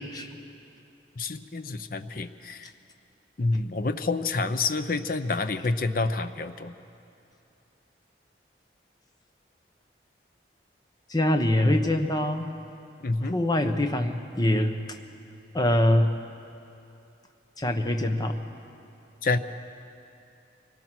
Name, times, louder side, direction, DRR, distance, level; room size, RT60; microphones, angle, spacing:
voice 1, 1.2-2.7 3.4-6.7 11.6-11.8 13.0-13.4 19.2-19.4, left 3 dB, 50° left, 10 dB, 0.7 m, -28 dB
voice 2, 11.1-12.5 13.2-14.7 15.5-16.1 17.6-18.4, left 1 dB, 20° left, 5 dB, 1.0 m, -24 dB
24.0 x 18.0 x 6.0 m, 2.8 s
head